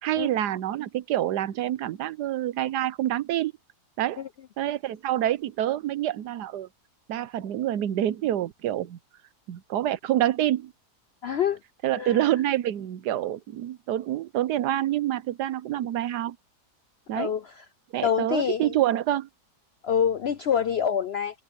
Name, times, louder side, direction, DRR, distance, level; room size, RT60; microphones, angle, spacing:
voice 1, 0.0-3.5 4.0-4.2 4.6-6.7 7.1-9.0 9.5-10.7 11.8-16.4 17.1-17.3 17.9-19.3, right 12 dB, 85° right, 1.3 m, -27 dB
voice 2, 11.2-11.6 11.9-12.2 17.1-17.6 18.0-18.7 19.8-21.4, left 8 dB, 70° left, 0.6 m, -26 dB
open air
omnidirectional pair, 1.7 m